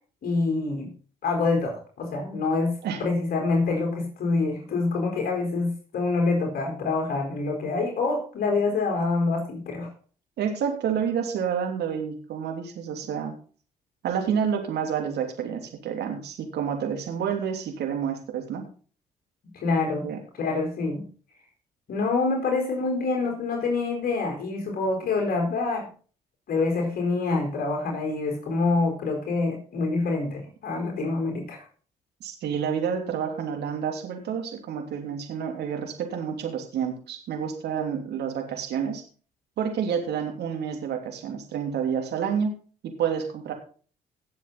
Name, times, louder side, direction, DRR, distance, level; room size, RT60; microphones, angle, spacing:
voice 1, 0.2-0.9 1.2-2.7 3.0-9.9 19.5-20.1 20.4-21.0 21.9-25.9 26.5-31.6, left 3 dB, 55° left, 2 dB, 4.4 m, -26 dB
voice 2, 10.4-13.4 14.0-18.7 20.0-20.2 32.2-39.0 39.6-42.5 42.8-43.5, right 7 dB, 70° right, 4 dB, 3.0 m, -29 dB
18.5 x 7.4 x 4.0 m, 0.40 s
hypercardioid pair, 55°, 18 cm